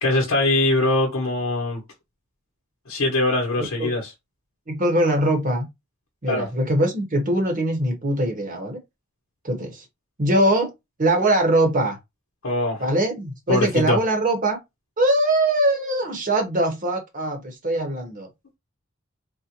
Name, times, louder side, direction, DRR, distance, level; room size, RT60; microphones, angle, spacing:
voice 1, 0.0-1.8 2.9-4.1 6.3-6.5 12.4-12.8 13.5-14.0, left 2 dB, 65° left, 0.8 m, -22 dB
voice 2, 3.6-3.9 4.7-5.7 6.2-8.8 9.4-9.8 10.2-10.7 11.0-12.0 12.8-14.6 15.0-18.3, right 1 dB, 35° right, 0.9 m, -22 dB
3.8 x 2.1 x 2.8 m
head